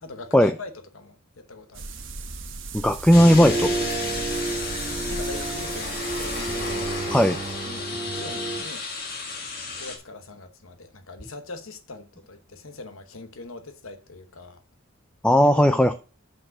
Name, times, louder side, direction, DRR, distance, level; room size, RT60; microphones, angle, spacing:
voice 1, 0.0-2.3 4.9-6.7 7.1-7.4 7.6-8.9 9.8-14.6 15.4-15.9, left 3 dB, 80° left, 1.1 m, -42 dB
sound 1, 1.7-7.8, right 3 dB, 65° right, 1.1 m, -37 dB
voice 2, 2.7-3.8 7.1-7.4 15.2-15.9, equal, 5° left, 0.3 m, -17 dB
sound 2, 3.1-10.0, left 3 dB, 45° left, 1.7 m, -33 dB
sound 3, 3.1-8.6, right 2 dB, 25° right, 1.8 m, -31 dB
6.0 x 5.2 x 5.9 m
head